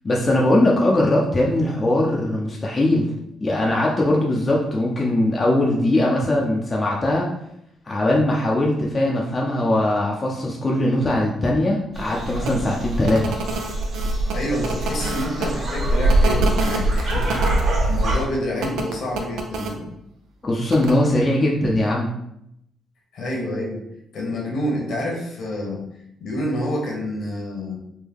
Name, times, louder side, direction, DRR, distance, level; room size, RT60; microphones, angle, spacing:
voice 1, 0.0-3.1 3.4-7.3 7.9-13.4 20.4-22.1, left 1 dB, 30° left, -3 dB, 0.6 m, -20 dB
sound 1, 11.9-18.2, right 1 dB, 50° right, 1.0 m, -23 dB
sound 2, 12.4-12.5 13.0-15.5 16.1-17.6 18.6-19.7 20.7-20.9, right 3 dB, 85° right, 0.5 m, -28 dB
voice 2, 14.3-19.8 23.1-23.8 24.1-25.8 26.2-27.8, equal, 70° left, -2 dB, 1.2 m, -28 dB
3.5 x 2.2 x 3.5 m, 0.78 s
cardioid pair, 90°, 0 cm